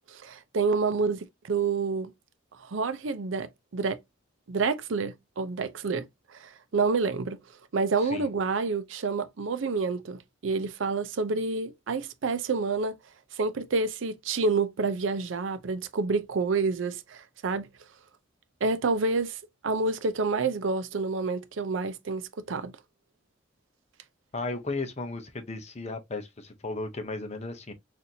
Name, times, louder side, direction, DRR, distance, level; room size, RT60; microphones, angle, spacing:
voice 1, 0.1-2.1 2.6-4.0 4.5-7.4 7.7-12.9 13.3-17.7 18.6-19.4 19.6-22.7, right 4 dB, 70° right, 0.5 m, -28 dB
voice 2, 24.3-27.7, left 3 dB, 35° left, 0.7 m, -35 dB
4.2 x 2.5 x 2.7 m
head